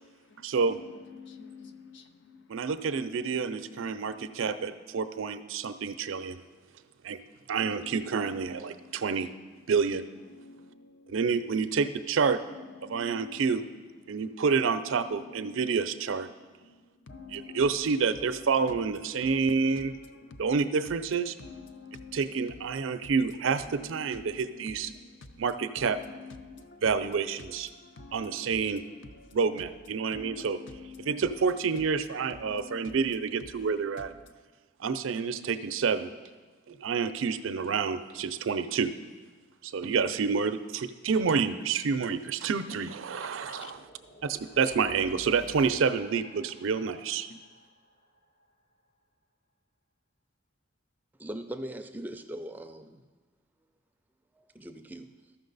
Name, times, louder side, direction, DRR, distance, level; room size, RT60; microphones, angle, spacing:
voice 1, 0.4-0.8 2.5-6.4 7.0-7.2 7.5-9.3 9.7-10.0 11.1-12.4 12.8-13.6 14.1-16.3 17.3-20.0 20.4-21.3 22.1-24.9 25.4-26.0 26.8-27.7 28.1-28.8 29.3-30.6 31.1-34.1 34.8-36.1 36.7-38.9 39.6-43.8 44.2-47.3, right 5 dB, 75° right, 11 dB, 0.4 m, -28 dB
voice 2, 1.2-2.0 10.4-10.8 12.8-13.4 17.1-17.6 19.3-19.4 21.7-22.2 26.4-26.8 28.0-28.5 30.1-30.5 31.0-31.1 32.4-32.8 43.6-43.7, left 4 dB, 60° left, 8 dB, 0.6 m, -47 dB
sound 1, 41.9-48.5, equal, 40° left, 0.9 m, -53 dB
voice 3, 51.2-53.0 54.3-55.2, right 1 dB, 10° right, 6 dB, 0.3 m, -40 dB
13.5 x 5.9 x 3.9 m, 1.3 s
head